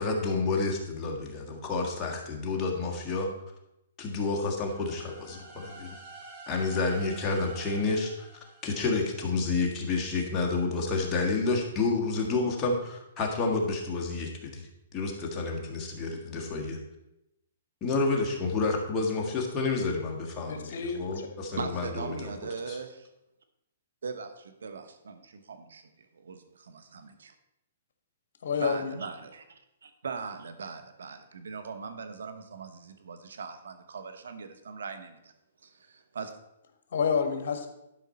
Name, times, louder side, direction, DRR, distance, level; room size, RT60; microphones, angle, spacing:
voice 1, 0.0-3.3 4.0-6.0 6.5-8.3 8.6-14.7 14.9-16.8 17.8-22.3 22.7-22.8, left 3 dB, 20° left, -1 dB, 1.6 m, -29 dB
sound 1, 4.6-9.4, right 2 dB, 40° right, 2.0 m, -49 dB
voice 2, 20.5-21.3 28.4-28.9 36.9-37.7, left 6 dB, 65° left, 6 dB, 1.5 m, -29 dB
voice 3, 21.6-23.1 24.0-27.3 28.6-35.3 35.6-36.4, right 5 dB, 85° right, 9 dB, 1.1 m, -40 dB
11.5 x 5.1 x 4.3 m, 0.87 s
hypercardioid pair, 155°, 0 cm